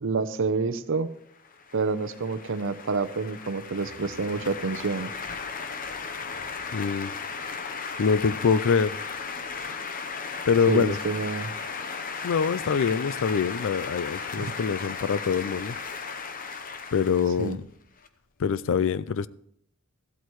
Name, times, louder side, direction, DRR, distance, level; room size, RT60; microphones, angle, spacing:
voice 1, 0.0-1.1 1.7-5.1 10.7-11.5 14.4-14.6 17.4-17.6, right 4 dB, 60° right, 0.7 m, -28 dB
sound 1, 1.4-18.1, left 5 dB, 40° left, 0.9 m, -36 dB
voice 2, 6.7-7.1 8.0-9.0 10.5-11.0 12.2-15.8 16.9-17.6 18.4-19.3, left 6 dB, 65° left, 0.4 m, -24 dB
14.5 x 12.5 x 3.1 m
head